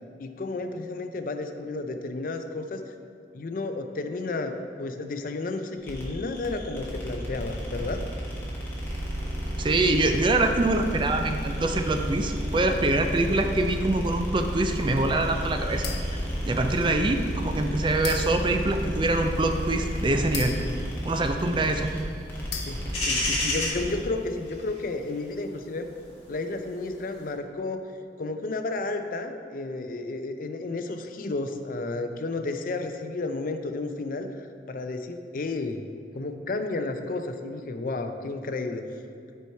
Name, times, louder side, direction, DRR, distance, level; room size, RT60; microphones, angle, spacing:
voice 1, 0.2-2.8 3.3-8.0 22.7-25.9 26.3-27.8 28.2-35.8 36.1-38.9, left 3 dB, 50° left, 7 dB, 0.4 m, -32 dB
sound 1, 5.8-24.0, equal, 15° left, 1.3 m, -32 dB
voice 2, 9.6-15.9 16.5-20.6 21.0-21.9, right 2 dB, 30° right, 6 dB, 0.4 m, -24 dB
sound 2, 15.8-16.3 17.0-17.1 18.0-18.6 20.3-21.5 22.5-23.2, left 6 dB, 70° left, 0.8 m, -37 dB
sound 3, 19.6-27.3, left 2 dB, 35° left, 1.8 m, -33 dB
8.3 x 4.5 x 4.5 m, 2.3 s
head